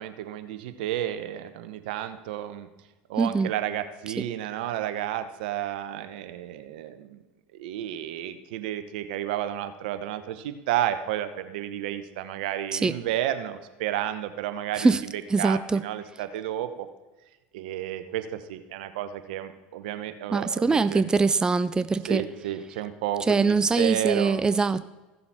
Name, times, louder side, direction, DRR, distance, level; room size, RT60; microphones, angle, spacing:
voice 1, 0.0-2.7 3.1-7.2 7.5-16.9 17.5-21.1 22.0-24.4, right 12 dB, 75° right, 10 dB, 1.0 m, -32 dB
voice 2, 3.2-3.5 12.7-12.9 14.8-15.0 15.3-15.8 20.3-22.3 23.3-24.9, right 4 dB, 15° right, 14 dB, 0.4 m, -23 dB
15.5 x 6.9 x 4.3 m, 1.2 s
hypercardioid pair, 90°, 5 cm